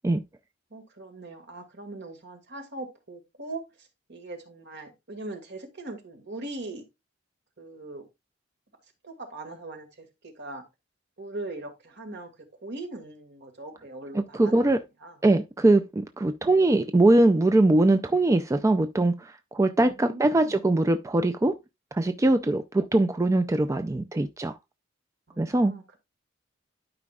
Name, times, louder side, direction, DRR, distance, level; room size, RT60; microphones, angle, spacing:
voice 1, 0.7-6.8 7.6-8.0 9.0-10.6 11.2-12.3 12.6-14.7 15.0-15.2 19.8-20.6 25.3-26.0, right 2 dB, 60° right, 1.9 m, -40 dB
voice 2, 14.3-14.8 15.2-21.5 21.9-24.6 25.4-25.7, right 2 dB, 15° right, 0.4 m, -22 dB
12.0 x 5.0 x 2.3 m
head